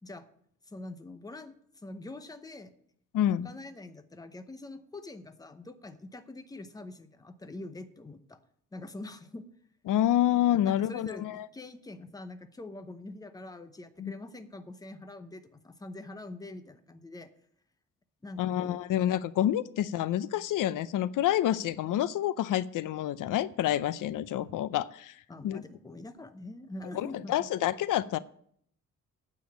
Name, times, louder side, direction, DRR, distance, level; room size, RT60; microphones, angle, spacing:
voice 1, 0.7-2.7 3.3-8.4 8.7-9.5 10.6-17.3 18.2-18.8 25.3-27.5, left 2 dB, 10° left, 10 dB, 0.8 m, -44 dB
voice 2, 3.1-3.5 9.9-11.5 14.0-14.1 18.4-25.6 26.9-28.2, left 12 dB, 90° left, 17 dB, 0.6 m, -28 dB
9.3 x 6.9 x 8.5 m, 0.65 s
wide cardioid pair, 160°, 31 cm